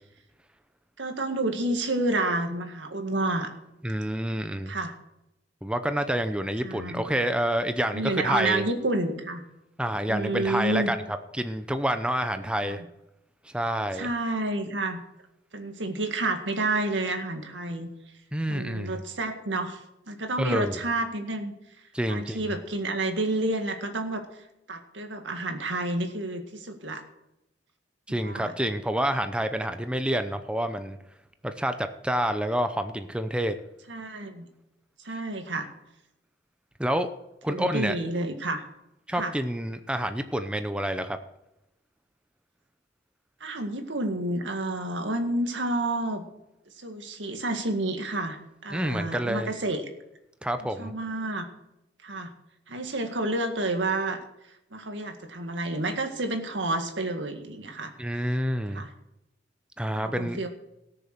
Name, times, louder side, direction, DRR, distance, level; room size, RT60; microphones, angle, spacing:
voice 1, 1.0-3.5 4.7-4.9 6.6-7.0 7.9-9.4 10.1-10.9 12.6-12.9 13.9-15.0 15.5-17.9 18.5-19.8 20.1-21.5 22.1-24.2 24.7-27.0 28.1-28.5 33.9-34.5 35.0-35.7 37.5-38.6 39.1-39.3 43.4-46.2 46.8-48.4 48.6-49.8 50.6-51.5 52.0-52.3 52.7-54.2 54.7-57.9 58.7-58.9 60.0-60.5, right 2 dB, 80° right, 6 dB, 1.9 m, -29 dB
voice 2, 3.8-4.7 5.6-8.6 9.8-11.0 11.3-12.8 13.5-14.1 18.3-19.0 20.4-20.8 21.9-22.4 28.1-31.0 31.4-33.5 36.8-37.1 37.4-38.0 39.1-41.2 48.7-49.5 50.4-50.9 58.0-58.8 59.8-60.4, right 1 dB, 5° right, 9 dB, 0.7 m, -28 dB
18.0 x 6.9 x 6.6 m, 0.89 s
head